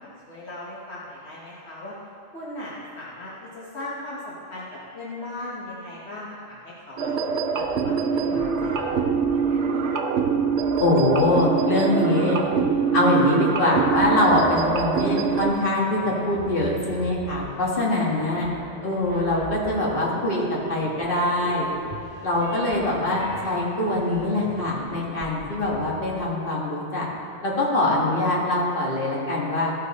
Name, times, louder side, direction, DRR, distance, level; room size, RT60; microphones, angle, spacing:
voice 1, 0.0-1.9 2.3-7.1 7.5-8.9 9.3-9.9, left 1 dB, 70° left, -6 dB, 1.6 m, -38 dB
sound 1, 7.0-15.5, right 5 dB, 80° right, 1.0 m, -24 dB
sound 2, 7.6-26.1, right 1 dB, 45° right, 2.0 m, -41 dB
voice 2, 10.8-12.4 12.9-18.5 18.8-21.7 22.2-27.1 27.4-29.7, left 1 dB, 50° left, -4 dB, 1.8 m, -23 dB
15.0 x 5.5 x 4.1 m, 2.5 s
omnidirectional pair, 1.2 m